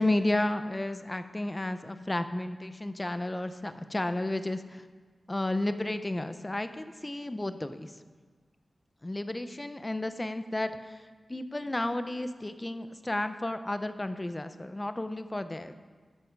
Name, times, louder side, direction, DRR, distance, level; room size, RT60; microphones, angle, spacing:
voice 1, 0.0-4.9 5.3-7.9 9.0-15.7, left 1 dB, 20° left, 10 dB, 0.7 m, -32 dB
14.0 x 12.5 x 4.7 m, 1.5 s
wide cardioid pair, 105°, 0 cm